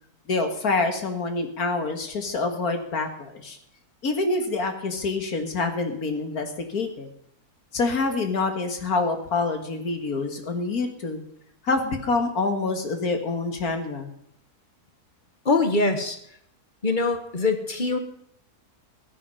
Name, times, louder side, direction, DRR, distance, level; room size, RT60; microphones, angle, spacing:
voice 1, 0.3-3.6 4.0-7.1 7.7-11.2 11.6-14.1, left 3 dB, 65° left, 5 dB, 2.2 m, -26 dB
voice 2, 15.4-16.2 16.8-18.0, left 3 dB, 30° left, 7 dB, 1.5 m, -23 dB
15.0 x 10.5 x 5.4 m, 0.70 s
omnidirectional pair, 1.7 m